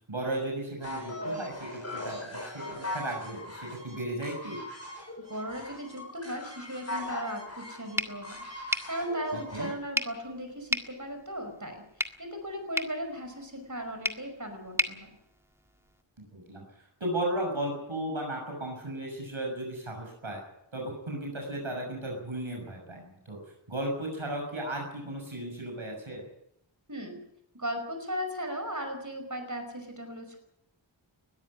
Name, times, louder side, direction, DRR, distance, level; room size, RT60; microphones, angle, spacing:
voice 1, 0.1-4.6 9.5-9.7 16.2-16.6 17.0-20.4 20.7-23.4 23.7-26.3, right 1 dB, 85° right, 1 dB, 6.8 m, -35 dB
sound 1, 0.8-9.7, left 1 dB, 30° left, 6.7 m, -40 dB
voice 2, 5.2-11.8 12.2-15.1 26.9-27.2 27.5-30.4, equal, 40° right, 6 dB, 5.3 m, -37 dB
sound 2, 7.9-16.0, equal, 5° right, 1.8 m, -37 dB
21.0 x 13.5 x 9.8 m, 0.77 s
wide cardioid pair, 40°, 46 cm